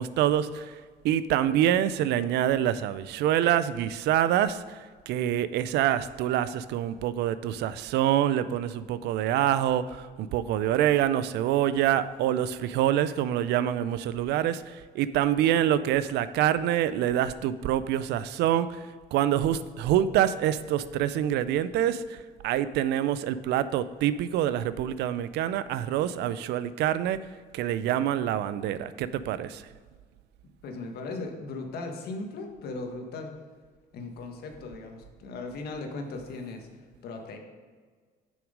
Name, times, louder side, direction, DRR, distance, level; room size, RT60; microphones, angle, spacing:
voice 1, 0.0-27.3 27.5-29.7, right 11 dB, 80° right, 15 dB, 0.5 m, -26 dB
voice 2, 30.6-33.3 33.9-36.7 37.0-37.4, left 3 dB, 70° left, 3 dB, 1.4 m, -37 dB
7.1 x 6.2 x 5.1 m, 1.5 s
cardioid pair, 110°, 17 cm